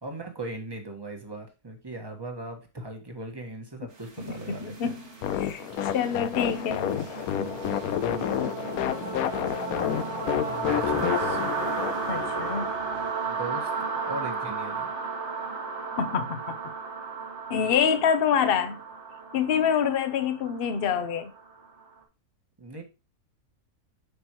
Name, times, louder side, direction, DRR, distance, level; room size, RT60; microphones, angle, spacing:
voice 1, 0.0-4.9 8.7-11.4 13.2-14.9 22.6-22.8, right 2 dB, 15° right, 1.4 m, -39 dB
sound 1, 4.0-21.8, right 5 dB, 45° right, 1.9 m, -34 dB
voice 2, 4.2-5.0 5.4-5.6 5.9-6.9 12.1-12.8 16.0-16.6 17.5-18.8 19.3-21.3, left 7 dB, 45° left, 0.9 m, -26 dB
sound 2, 5.2-12.7, left 10 dB, 75° left, 1.0 m, -29 dB
8.2 x 6.1 x 3.0 m
omnidirectional pair, 1.7 m